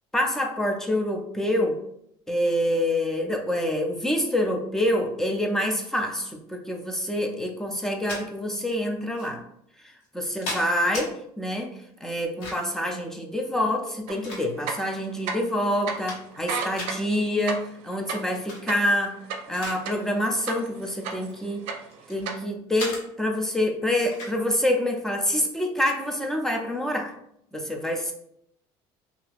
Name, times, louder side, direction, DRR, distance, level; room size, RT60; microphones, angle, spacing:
voice 1, 0.1-1.8 2.3-9.4 10.1-11.7 12.0-19.2 19.5-21.6 22.1-27.1 27.5-28.1, left 1 dB, 5° left, 3 dB, 0.3 m, -26 dB
sound 1, 7.8-8.2 9.2-9.3 10.0-11.1 12.1-12.8 13.8-14.8 15.4-15.5 15.8-16.5 16.7-16.9 18.3-18.6 19.0-19.8 20.1-20.4 21.1-22.2 22.8-23.0 24.1-24.4, left 2 dB, 75° left, 1.1 m, -36 dB
sound 2, 14.1-14.2 14.6-15.6 15.9-16.0 16.4-20.1 20.5-21.3 21.6-22.4, right 5 dB, 70° right, 0.5 m, -32 dB
2.7 x 2.3 x 3.3 m, 0.74 s
cardioid pair, 155°, 12 cm